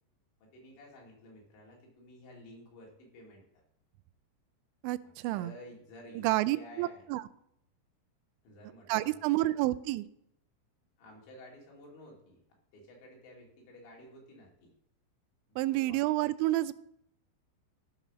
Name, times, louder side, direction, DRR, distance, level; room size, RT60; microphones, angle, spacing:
voice 1, 0.4-3.6 5.0-7.0 8.4-9.6 11.0-12.4 12.7-14.7 15.5-16.0, left 1 dB, 75° left, -2 dB, 5.0 m, -53 dB
voice 2, 4.8-5.5 6.2-7.2 8.9-10.1 15.6-16.7, right 17 dB, 85° right, 15 dB, 2.9 m, -29 dB
14.0 x 5.5 x 6.1 m, 0.74 s
omnidirectional pair, 5.2 m